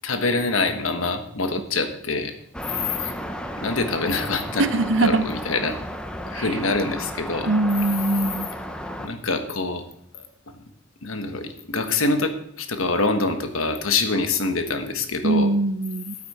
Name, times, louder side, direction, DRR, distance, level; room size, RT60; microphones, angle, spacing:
voice 1, 0.0-2.3 3.0-3.1 3.6-5.8 6.3-7.5 9.0-9.8 10.1-10.2 11.0-12.3 12.6-15.5, left 3 dB, 85° left, 6 dB, 1.3 m, -25 dB
sound 1, 2.5-9.1, equal, 5° left, 0.6 m, -33 dB
voice 2, 4.6-5.2 6.4-6.5 7.5-8.5 15.2-16.2, right 2 dB, 65° right, 12 dB, 0.7 m, -22 dB
13.5 x 8.5 x 4.2 m, 0.73 s
head